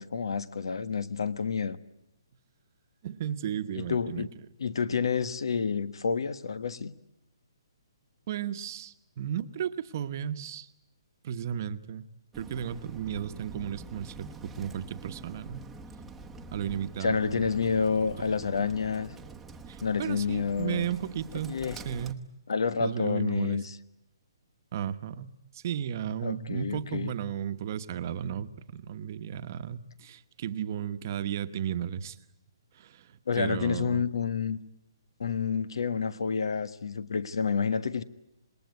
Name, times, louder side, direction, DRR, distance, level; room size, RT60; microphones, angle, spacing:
voice 1, 0.0-1.8 3.7-4.3 4.6-6.9 17.0-19.1 19.8-20.9 21.5-21.8 22.5-23.8 26.2-27.1 33.3-34.6 35.2-38.0, left 5 dB, 80° left, 1.3 m, -29 dB
voice 2, 3.0-4.3 4.9-5.0 8.3-10.7 11.2-12.1 12.3-15.6 16.5-17.6 18.6-18.8 19.7-21.6 21.8-22.3 22.8-23.6 24.7-32.2 32.7-34.0, right 9 dB, 40° right, 1.1 m, -34 dB
Bird, 12.3-22.1, right 3 dB, 5° right, 1.1 m, -46 dB
27.0 x 20.0 x 9.5 m
hypercardioid pair, 160°, 2 cm